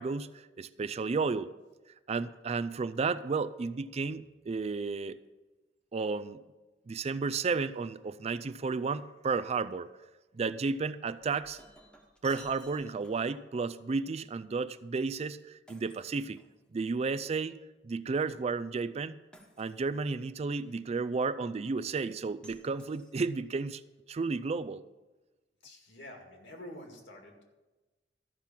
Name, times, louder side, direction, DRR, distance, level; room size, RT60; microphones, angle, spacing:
voice 1, 0.0-1.5 2.1-5.2 5.9-6.4 6.9-9.9 10.3-11.6 12.2-16.4 16.7-17.6 17.8-19.2 19.6-23.8 24.1-24.8, right 4 dB, 35° right, 13 dB, 0.4 m, -32 dB
Shatter, 11.3-13.4 15.7-17.0 19.3-20.1 22.4-23.5, left 1 dB, 5° left, 1.1 m, -57 dB
voice 2, 25.6-27.4, left 1 dB, 70° left, 2 dB, 2.2 m, -48 dB
13.5 x 5.8 x 7.3 m, 1.2 s
head